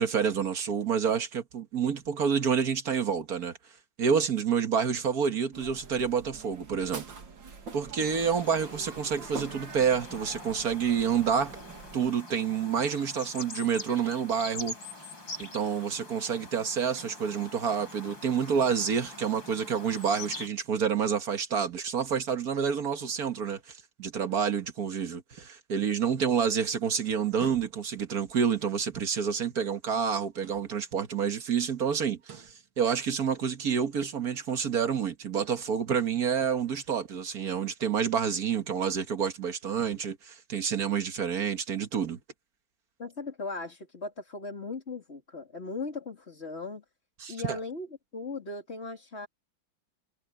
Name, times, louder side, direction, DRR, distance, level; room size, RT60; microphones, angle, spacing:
voice 1, 0.0-3.6 4.0-7.0 7.7-11.6 11.9-14.8 15.4-23.6 24.0-42.2 47.2-47.6, right 7 dB, 50° right, 1.8 m, -28 dB
sound 1, 5.5-12.1, right 4 dB, 70° right, 2.9 m, -45 dB
sound 2, 8.0-20.5, left 3 dB, 75° left, 7.4 m, -44 dB
sound 3, 27.3-28.1 30.3-31.0 32.2-32.7, right 8 dB, 85° right, 3.3 m, -50 dB
voice 2, 43.0-46.8 47.3-47.9 48.1-49.3, left 3 dB, 30° left, 3.6 m, -38 dB
omnidirectional pair, 2.1 m